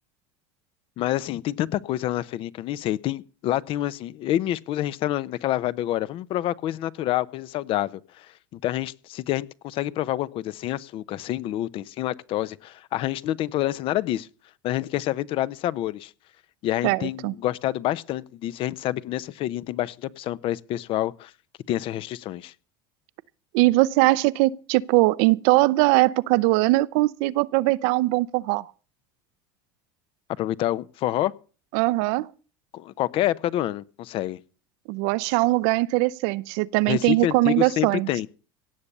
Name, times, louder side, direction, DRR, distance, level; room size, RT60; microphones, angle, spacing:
voice 1, 1.0-8.3 8.5-14.3 14.6-16.1 16.6-21.3 21.7-22.5 30.4-31.3 32.7-34.4 36.9-38.3, left 13 dB, 55° left, 0.7 m, -27 dB
voice 2, 16.8-17.3 23.5-28.7 31.7-32.3 34.9-38.1, right 20 dB, 70° right, 0.6 m, -21 dB
17.0 x 7.1 x 6.7 m
supercardioid pair, 100°, 11 cm